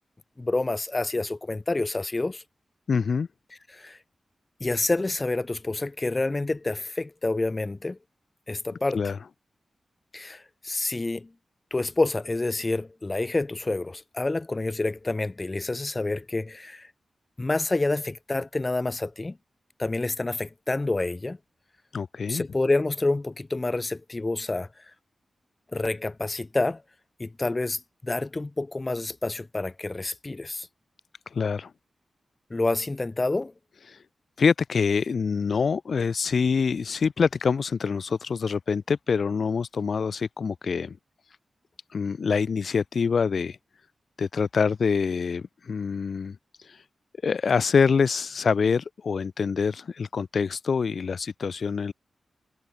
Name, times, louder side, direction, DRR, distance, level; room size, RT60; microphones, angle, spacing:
voice 1, 0.4-2.4 3.7-4.0 4.6-8.0 8.5-9.0 10.1-11.3 11.7-16.9 17.4-19.4 19.8-21.4 22.3-24.8 25.7-26.8 27.2-30.7 32.5-33.5, left 2 dB, 25° left, 4.2 m, -28 dB
voice 2, 2.9-3.3 8.9-9.2 21.9-22.4 31.3-31.7 34.4-41.0 41.9-43.6 44.2-46.4 47.2-51.9, left 5 dB, 60° left, 3.0 m, -25 dB
wide cardioid pair, 125°, 0 cm